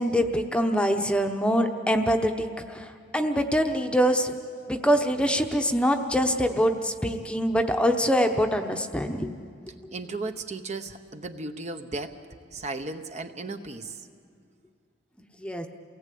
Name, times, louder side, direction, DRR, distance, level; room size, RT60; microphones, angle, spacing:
voice 1, 0.0-4.4 4.7-9.3 15.4-15.7, equal, 5° left, 5 dB, 0.9 m, -24 dB
voice 2, 9.9-12.1 12.5-14.0, right 3 dB, 35° right, 7 dB, 0.9 m, -35 dB
29.0 x 18.0 x 8.5 m, 2.3 s
head